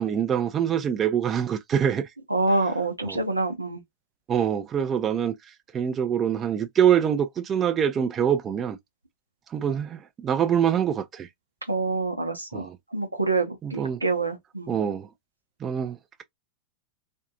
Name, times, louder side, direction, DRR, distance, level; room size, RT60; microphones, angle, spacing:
voice 1, 0.0-2.1 3.1-3.2 4.3-5.3 5.7-8.8 9.5-11.3 12.5-12.8 13.6-14.0 14.7-15.1 15.6-16.2, right 9 dB, 25° right, 0.5 m, -25 dB
voice 2, 2.3-3.8 11.7-14.8, right 3 dB, 80° right, 0.7 m, -27 dB
2.6 x 2.4 x 2.6 m
figure-of-eight pair, 90°, 0 cm